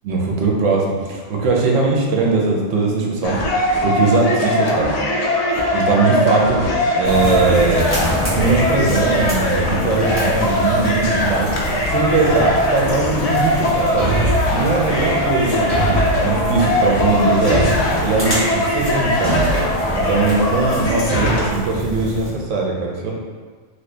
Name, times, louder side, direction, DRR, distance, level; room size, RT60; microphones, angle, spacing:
voice 1, 0.0-3.4 3.8-4.9 5.7-6.6 6.9-7.9 8.3-11.5 11.9-14.1 14.5-17.7 18.0-19.4 19.9-23.1, right 3 dB, 75° right, -1 dB, 1.0 m, -20 dB
sound 1, 3.2-21.5, left 1 dB, 75° left, 0.3 m, -20 dB
sound 2, 7.0-22.3, equal, 10° left, 1.0 m, -27 dB
Thump thud, 14.0-14.6 15.7-16.3 17.5-18.0 19.2-19.7 21.1-21.4, right 1 dB, 35° right, 1.1 m, -21 dB
3.0 x 2.7 x 3.3 m, 1.5 s
omnidirectional pair, 1.3 m